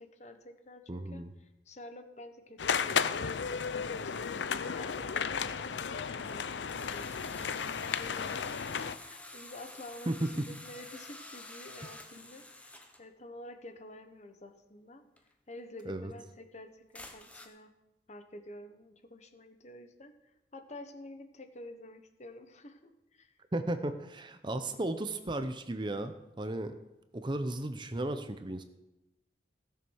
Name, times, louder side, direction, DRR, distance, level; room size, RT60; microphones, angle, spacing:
voice 1, 0.0-4.2 4.5-15.0 15.5-17.7 18.1-23.3, left 1 dB, 40° left, 8 dB, 1.2 m, -50 dB
voice 2, 0.9-1.3 10.1-10.2 15.9-16.1 23.5-26.8 27.1-28.6, right 1 dB, 25° right, 9 dB, 0.7 m, -35 dB
sound 1, 2.6-9.0, left 6 dB, 90° left, 0.6 m, -34 dB
sound 2, 4.8-4.9 5.9-6.4 6.7-13.0 15.2-15.3 15.8-15.9 16.9-17.5, left 2 dB, 10° left, 1.0 m, -49 dB
16.0 x 7.0 x 6.4 m, 0.97 s
head